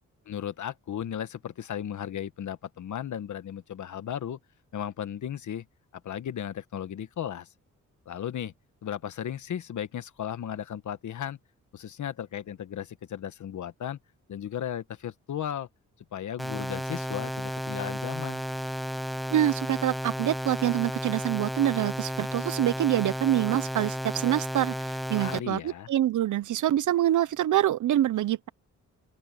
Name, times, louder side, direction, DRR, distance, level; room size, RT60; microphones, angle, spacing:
voice 1, 0.3-4.4 4.7-5.7 6.0-7.5 8.1-8.5 8.8-11.4 11.7-14.0 14.3-15.7 16.1-18.4 25.2-25.9, left 10 dB, 75° left, 1.3 m, -35 dB
sound 1, 16.4-25.4, equal, ahead, 1.2 m, -33 dB
voice 2, 19.3-24.7 25.1-28.5, right 12 dB, 80° right, 0.7 m, -25 dB
open air
wide cardioid pair, 150°, 30 cm